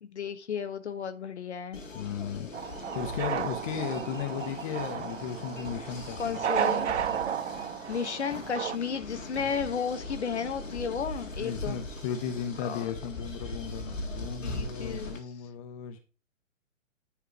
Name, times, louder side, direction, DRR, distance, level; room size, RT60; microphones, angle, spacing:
voice 1, 0.0-1.8 6.2-6.9 7.9-11.8 12.6-12.9 14.4-15.1, left 6 dB, 60° left, 9 dB, 1.3 m, -33 dB
sound 1, 1.7-15.2, left 2 dB, 75° left, 2.1 m, -40 dB
voice 2, 1.9-6.5 9.4-9.5 11.4-16.0, left 8 dB, 25° left, 6 dB, 1.0 m, -36 dB
sound 2, 2.5-8.8, right 9 dB, 60° right, 0.6 m, -33 dB
10.0 x 3.6 x 4.7 m, 0.35 s
figure-of-eight pair, 120°, 39 cm